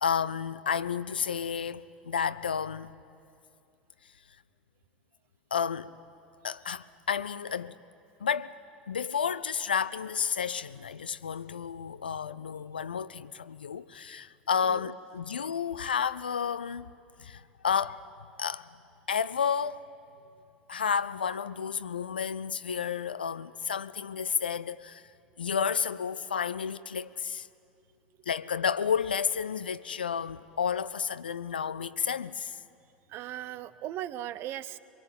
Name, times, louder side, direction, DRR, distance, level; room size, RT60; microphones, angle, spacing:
voice 1, 0.0-2.9 5.5-5.9 6.4-7.8 8.2-8.6 8.9-16.9 17.2-18.0 18.4-18.7 19.1-19.8 20.7-25.0 25.4-27.5 28.3-32.6, left 7 dB, 80° left, 0.5 m, -31 dB
voice 2, 33.1-34.8, right 12 dB, 45° right, 0.8 m, -38 dB
24.0 x 22.5 x 9.5 m
figure-of-eight pair, 75°, 5 cm